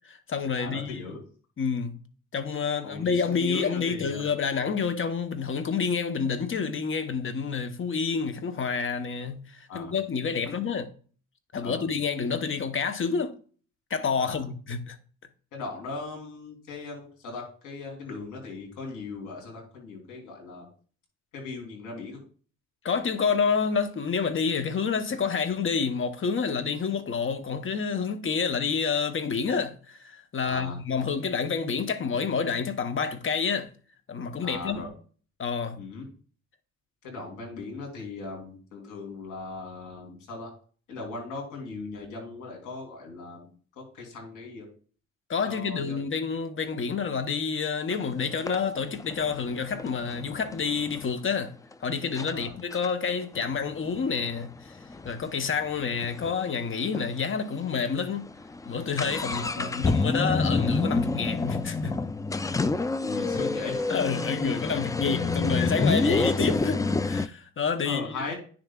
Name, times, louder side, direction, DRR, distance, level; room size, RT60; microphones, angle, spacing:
voice 1, 0.0-1.1 1.6-2.0 2.3-10.9 11.5-13.3 13.9-15.0 22.8-33.7 34.1-34.8 35.4-35.8 45.3-51.5 51.8-54.8 55.0-58.2 58.7-62.0 63.9-68.3, left 5 dB, 40° left, 1.0 m, -28 dB
voice 2, 0.6-1.2 2.8-4.2 9.7-9.9 10.5-10.6 11.6-11.9 14.2-14.4 15.5-20.7 21.3-22.2 30.4-30.8 34.4-34.9 35.8-36.1 37.0-40.5 40.9-43.5 43.8-44.7 45.4-46.0 52.3-52.5 59.3-59.7 63.0-63.9 64.5-64.7 67.8-68.3, left 3 dB, 90° left, 3.4 m, -38 dB
sound 1, 47.9-48.0 48.5-51.1 51.7-51.8 52.2-52.3 52.7-56.4 56.7-56.8 56.9-57.1 57.7-57.8 58.1-67.3, left 3 dB, 10° left, 0.3 m, -28 dB
9.7 x 6.7 x 2.4 m
cardioid pair, 90°, 30 cm